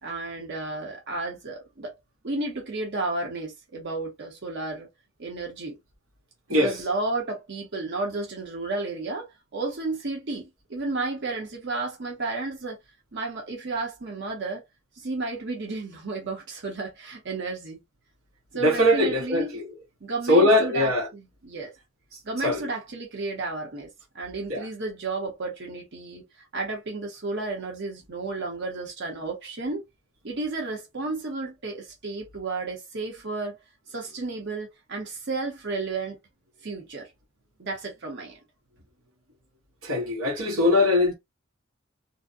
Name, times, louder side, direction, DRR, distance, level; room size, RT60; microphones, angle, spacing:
voice 1, 0.0-1.9 2.2-4.9 5.2-5.8 6.5-12.8 13.1-14.6 15.0-17.8 18.5-19.6 20.0-21.7 22.2-23.9 24.1-29.8 30.2-33.6 33.9-36.2 36.6-37.1 37.6-38.4, right 3 dB, 60° right, 0.9 m, -32 dB
voice 2, 18.6-19.7 20.3-21.1 22.4-22.6 24.5-24.6 39.8-41.1, left 1 dB, 85° right, 0.9 m, -21 dB
2.6 x 2.2 x 2.3 m
head